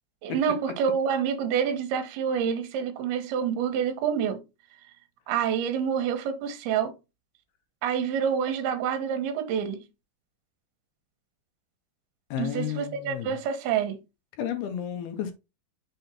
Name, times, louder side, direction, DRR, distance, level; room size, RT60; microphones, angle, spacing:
voice 1, 0.2-4.4 5.3-6.9 7.8-9.8 12.4-14.0, right 7 dB, 75° right, 2.9 m, -27 dB
voice 2, 12.3-13.4 14.4-15.3, left 10 dB, 75° left, 2.8 m, -32 dB
6.7 x 3.5 x 4.4 m
omnidirectional pair, 4.9 m